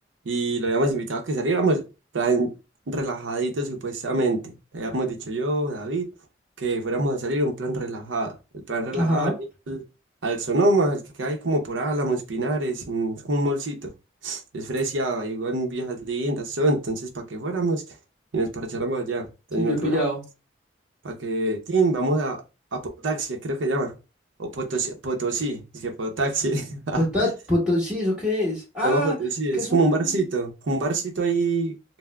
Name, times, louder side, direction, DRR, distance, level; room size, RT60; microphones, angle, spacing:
voice 1, 0.3-1.8 2.1-2.5 2.9-6.1 6.6-8.3 8.7-9.3 9.7-9.8 10.2-13.9 14.2-17.8 18.3-20.0 21.0-22.4 22.7-23.9 24.4-27.3 28.8-31.7, right 2 dB, 85° right, 0.7 m, -25 dB
voice 2, 8.9-9.3 19.6-20.2 26.9-29.2 29.5-30.2, left 1 dB, 5° right, 1.6 m, -25 dB
5.6 x 2.0 x 2.2 m
head